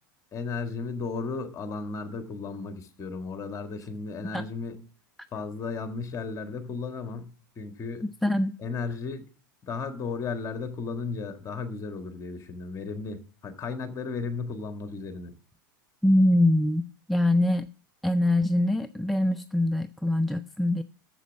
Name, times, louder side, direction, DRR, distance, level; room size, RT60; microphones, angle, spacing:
voice 1, 0.3-4.8 5.3-7.3 7.6-8.1 8.6-9.3 9.6-15.3, left 4 dB, 30° left, 1.7 m, -34 dB
voice 2, 8.2-8.5 16.0-17.7 18.0-20.8, left 1 dB, ahead, 0.4 m, -23 dB
7.3 x 6.9 x 7.3 m
hypercardioid pair, 100°, 11 cm